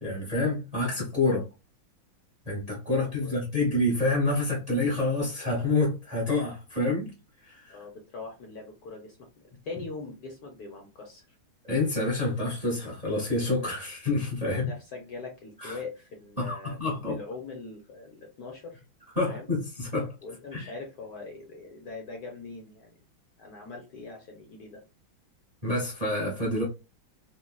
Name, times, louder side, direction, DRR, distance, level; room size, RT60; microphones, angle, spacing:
voice 1, 0.0-1.4 2.5-7.1 7.4-7.8 11.7-14.7 15.6-15.8 16.4-17.2 19.2-20.1 20.5-20.7 25.6-26.6, left 2 dB, 30° right, 0.7 m, -28 dB
voice 2, 7.7-11.2 14.4-18.8 19.2-19.5 20.2-23.0 23.4-24.8, left 3 dB, 65° left, 1.0 m, -42 dB
3.8 x 2.2 x 2.2 m
omnidirectional pair, 2.2 m